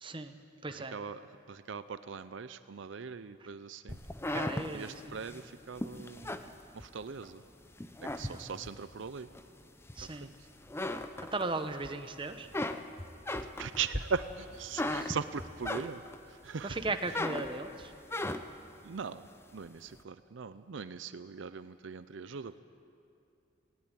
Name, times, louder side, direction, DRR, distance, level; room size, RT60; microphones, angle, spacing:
voice 1, 0.0-0.3 0.6-1.0 4.3-5.2 8.2-8.4 10.0-10.3 11.3-12.5 15.0-15.1 16.6-17.9, right 3 dB, 25° right, 8 dB, 0.9 m, -37 dB
voice 2, 0.7-1.2 1.5-4.0 4.7-6.4 6.7-7.4 8.1-9.3 10.0-10.3 13.4-16.0 16.3-16.8 18.8-19.3 19.5-22.6, right 6 dB, 70° right, 13 dB, 0.6 m, -40 dB
sound 1, 3.9-7.3 7.7-8.8 9.3-10.3 10.6-11.9 12.2-16.3 16.7-18.7, left 1 dB, 10° left, 0.6 m, -37 dB
19.0 x 17.0 x 9.1 m, 2.5 s
head